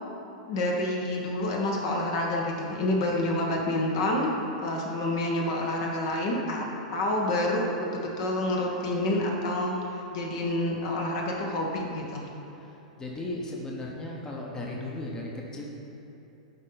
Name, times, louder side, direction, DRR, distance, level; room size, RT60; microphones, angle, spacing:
voice 1, 0.5-4.3 4.6-6.6 6.9-12.3, left 1 dB, 55° left, -1 dB, 1.3 m, -28 dB
voice 2, 13.0-15.6, left 2 dB, 15° left, -2 dB, 1.0 m, -36 dB
11.0 x 4.3 x 3.9 m, 3.0 s
hypercardioid pair, 110°, 4 cm